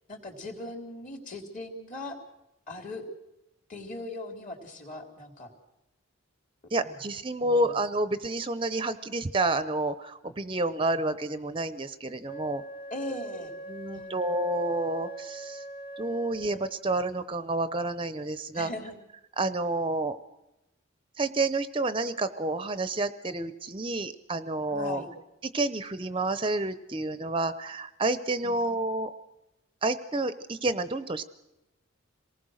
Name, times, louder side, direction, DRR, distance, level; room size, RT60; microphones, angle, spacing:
voice 1, 0.1-2.2 2.7-3.1 3.7-5.5 6.8-7.0 7.4-7.8 12.9-13.5 13.9-14.2 18.5-19.0 24.7-25.1 28.4-28.7, left 1 dB, 40° left, 4 dB, 3.6 m, -39 dB
voice 2, 6.7-12.6 13.7-15.6 16.0-18.7 19.4-20.2 21.2-25.0 25.5-29.1 29.8-31.2, right 2 dB, 25° right, 12 dB, 0.7 m, -29 dB
Wind instrument woodwind instrument, 12.2-16.9, right 1 dB, 25° left, 1.4 m, -42 dB
27.0 x 19.0 x 6.4 m, 0.93 s
head